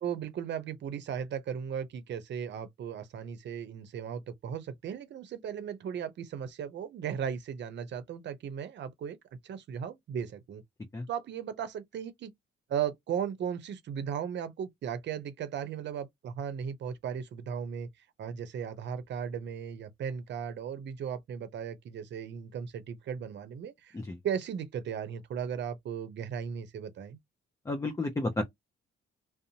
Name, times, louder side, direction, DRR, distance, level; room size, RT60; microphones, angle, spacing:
voice 1, 0.0-9.2 9.4-10.6 11.1-12.3 12.7-17.9 18.2-24.0 24.2-27.2, right 8 dB, 65° right, 0.7 m, -36 dB
voice 2, 27.7-28.4, left 2 dB, 15° left, 0.6 m, -31 dB
2.6 x 2.0 x 2.8 m
cardioid pair, 90°, 20 cm